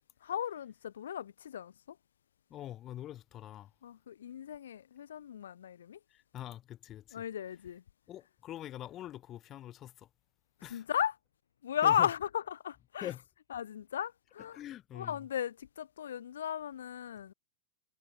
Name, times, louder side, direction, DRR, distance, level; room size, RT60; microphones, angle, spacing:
voice 1, 0.2-2.0 3.8-6.0 7.1-7.8 10.7-11.2 11.6-13.1 13.5-14.6 14.9-17.3, left 9 dB, 65° left, 1.0 m, -35 dB
voice 2, 2.5-3.7 6.1-7.2 8.1-10.1 10.6-10.8 11.8-12.1 13.0-13.2 14.5-15.2, left 12 dB, 30° left, 1.3 m, -44 dB
figure-of-eight pair, 90°, 0 cm